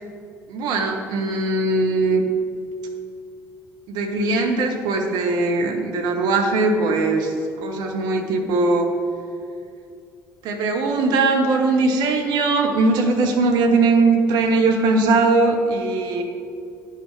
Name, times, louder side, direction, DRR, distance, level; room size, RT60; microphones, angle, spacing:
voice 1, 0.5-2.2 3.9-8.9 10.4-16.2, right 3 dB, 60° right, 4 dB, 0.8 m, -20 dB
10.0 x 5.7 x 4.7 m, 2.5 s
figure-of-eight pair, 55°, 8 cm